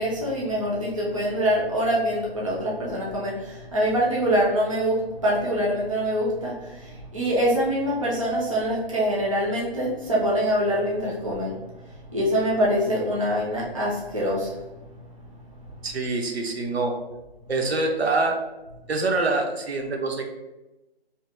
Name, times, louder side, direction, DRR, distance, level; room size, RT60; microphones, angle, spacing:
voice 1, 0.0-11.6 12.1-14.6, equal, 35° right, -5 dB, 0.4 m, -24 dB
voice 2, 15.8-16.9 17.5-18.4 18.9-20.2, right 3 dB, 75° right, 2 dB, 0.7 m, -25 dB
2.8 x 2.1 x 3.3 m, 1.0 s
hypercardioid pair, 175°, 31 cm